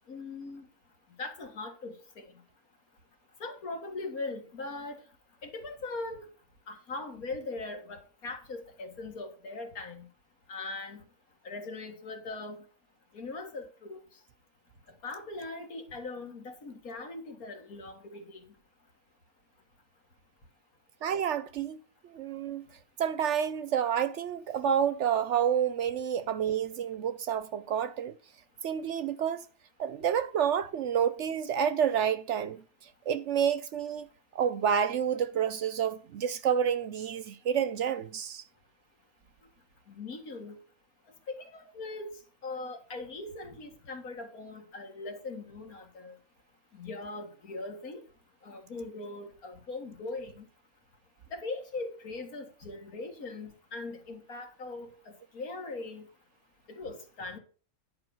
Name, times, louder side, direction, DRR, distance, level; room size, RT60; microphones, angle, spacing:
voice 1, 0.1-0.7 1.2-2.3 3.4-5.0 5.4-6.3 6.7-10.1 10.5-11.0 11.4-12.6 13.1-14.0 15.0-18.5 39.9-40.6 41.3-46.2 46.7-48.0 48.4-50.5 51.3-56.1 56.7-57.4, left 3 dB, 80° left, 2.4 m, -40 dB
voice 2, 21.0-21.8 22.0-22.7 23.0-28.2 28.6-29.5 29.8-32.6 33.1-34.1 34.3-38.4, right 8 dB, 65° right, 0.8 m, -29 dB
10.5 x 4.9 x 6.3 m
omnidirectional pair, 1.5 m